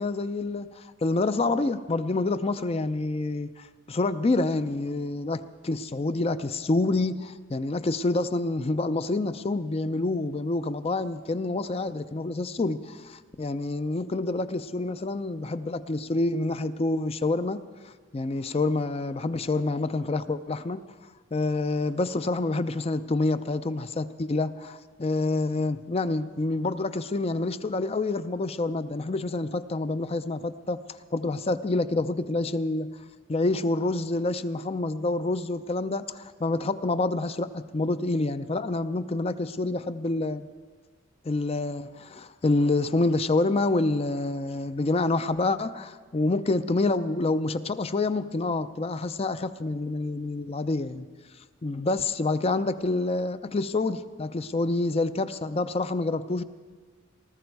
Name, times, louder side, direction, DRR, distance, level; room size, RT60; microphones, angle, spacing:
voice 1, 0.0-17.6 17.8-20.8 21.3-32.9 33.3-40.5 41.2-51.1 51.6-56.4, left 2 dB, 30° left, 12 dB, 0.4 m, -27 dB
19.5 x 13.5 x 4.6 m, 1.4 s
head